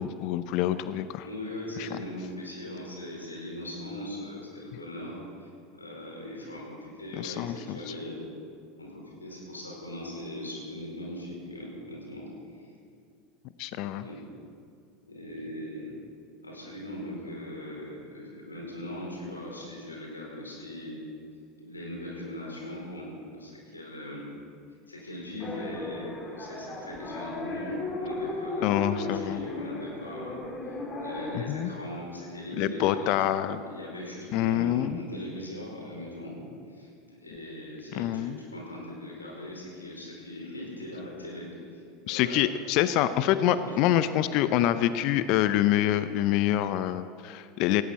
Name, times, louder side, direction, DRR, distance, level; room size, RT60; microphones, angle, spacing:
voice 1, 0.0-1.3 1.8-2.0 7.2-7.8 13.6-14.0 28.6-29.5 31.3-31.7 32.6-33.6 34.3-35.0 37.9-38.4 42.1-47.8, left 12 dB, 55° left, 13 dB, 0.6 m, -26 dB
voice 2, 1.2-8.2 8.8-12.2 12.5-12.7 14.0-14.2 15.0-15.9 16.4-21.0 21.6-24.3 24.9-36.3 36.7-41.5 41.7-42.4 42.9-43.0 43.4-43.8, left 1 dB, 90° left, -3 dB, 4.6 m, -40 dB
sound 1, 25.4-31.4, left 2 dB, 30° left, 3.3 m, -36 dB
18.5 x 16.0 x 4.3 m, 2.4 s
figure-of-eight pair, 80°, 0 cm